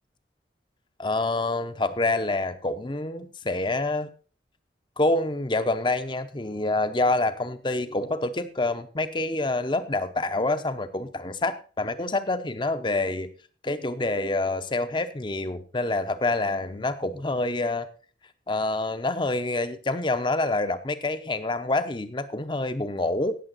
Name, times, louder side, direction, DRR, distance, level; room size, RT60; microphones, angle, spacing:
voice 1, 1.0-4.1 5.0-13.3 13.6-17.9 18.5-23.4, left 2 dB, 25° left, 11 dB, 0.7 m, -27 dB
17.0 x 6.9 x 4.0 m, 0.39 s
head